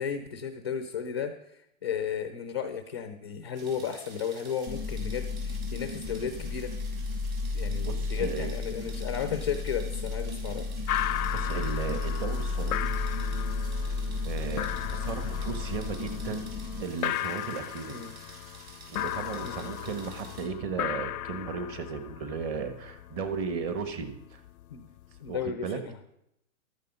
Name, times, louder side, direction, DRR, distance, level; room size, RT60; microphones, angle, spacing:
voice 1, 0.0-6.7 7.5-10.7 17.9-18.1 19.4-19.7 24.7-24.9 25.2-26.0, left 7 dB, 20° left, 9 dB, 0.4 m, -34 dB
sound 1, 3.5-20.4, right 3 dB, 75° right, 6.5 m, -50 dB
Cavernous Drone, 4.7-16.8, left 3 dB, 5° right, 0.8 m, -33 dB
voice 2, 7.8-8.5 11.3-12.9 14.2-16.5 16.8-18.0 18.9-24.4 25.3-25.8, right 5 dB, 25° right, 9 dB, 1.4 m, -35 dB
sound 2, 10.9-25.4, left 13 dB, 85° left, 0.5 m, -36 dB
14.5 x 13.0 x 5.4 m, 0.77 s
hypercardioid pair, 160°, 43 cm